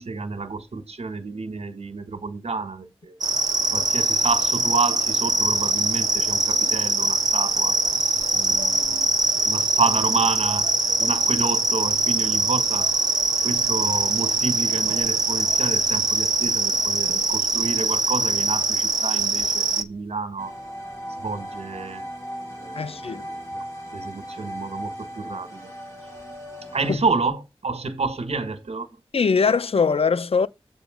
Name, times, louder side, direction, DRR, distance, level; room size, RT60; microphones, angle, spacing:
voice 1, 0.0-3.1 3.7-7.8 8.3-9.0 9.4-10.7 11.0-12.9 13.4-20.5 21.2-22.0 22.6-23.6 23.9-25.7 26.7-28.9, right 4 dB, 90° right, 1.6 m, -29 dB
sound 1, 3.2-19.8, right 2 dB, 40° right, 0.9 m, -22 dB
sound 2, 20.4-27.0, equal, 30° left, 6.0 m, -37 dB
voice 2, 22.8-23.2 26.9-27.0 29.1-30.5, left 5 dB, 70° left, 0.5 m, -21 dB
8.1 x 5.0 x 5.0 m
wide cardioid pair, 80°, 10 cm